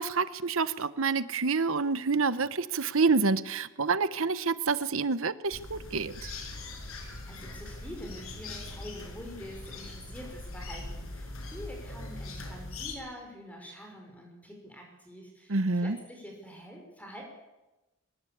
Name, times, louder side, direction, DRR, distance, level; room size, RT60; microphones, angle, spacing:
voice 1, 0.0-6.3 15.5-16.0, right 4 dB, 70° right, 15 dB, 0.9 m, -28 dB
sound 1, 5.5-13.0, left 2 dB, 75° left, 5.3 m, -41 dB
voice 2, 6.9-17.2, equal, 5° left, 1 dB, 5.4 m, -46 dB
22.5 x 21.0 x 8.6 m, 1.0 s
head